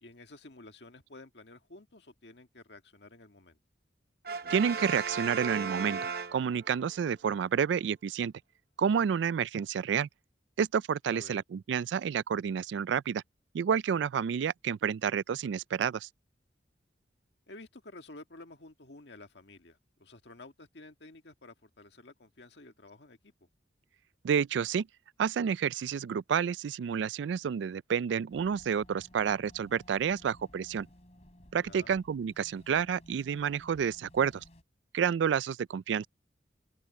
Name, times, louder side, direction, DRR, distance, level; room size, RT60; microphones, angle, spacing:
voice 1, 0.0-3.6 11.1-11.4 17.5-23.5 31.6-32.0, left 2 dB, 70° left, 1.7 m, -52 dB
Brass instrument, 4.2-6.9, right 5 dB, 55° right, 0.9 m, -36 dB
voice 2, 4.5-6.0 6.3-8.3 8.8-10.1 10.6-13.2 13.5-16.1 24.2-24.9 25.2-30.9 31.5-34.4 34.9-36.1, right 7 dB, 75° right, 0.3 m, -29 dB
sound 1, 28.3-34.6, equal, 35° left, 3.8 m, -57 dB
open air
head